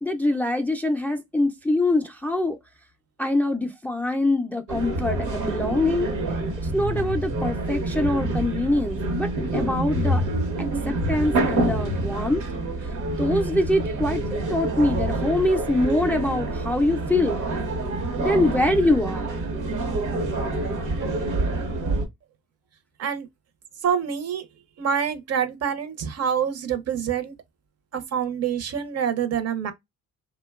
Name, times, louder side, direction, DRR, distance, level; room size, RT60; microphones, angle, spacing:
voice 1, 0.0-2.6 3.2-6.1 6.7-10.2 10.9-12.4 13.2-17.4 18.2-19.3, left 2 dB, 5° left, 0.3 m, -24 dB
sound 1, 4.7-22.1, right 2 dB, 85° right, 0.9 m, -27 dB
voice 2, 23.8-24.4 24.8-27.3 27.9-29.7, right 8 dB, 55° right, 0.6 m, -26 dB
2.7 x 2.1 x 2.2 m
cardioid pair, 90°, 30 cm